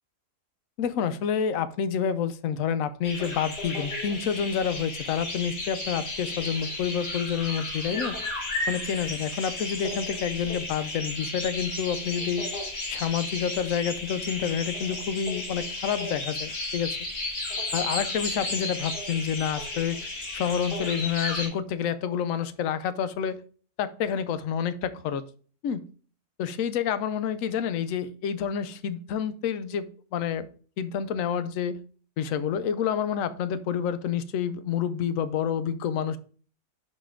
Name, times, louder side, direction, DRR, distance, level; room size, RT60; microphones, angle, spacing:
voice 1, 0.8-8.2 8.7-12.5 12.9-17.0 17.7-20.0 20.3-23.4 23.8-25.2 25.6-25.8 26.4-30.5 30.8-31.8 32.2-36.2, left 8 dB, 65° left, 13 dB, 1.0 m, -28 dB
sound 1, 3.0-21.5, left 2 dB, 80° left, 2.7 m, -33 dB
6.4 x 5.4 x 3.7 m, 0.40 s
omnidirectional pair, 1.7 m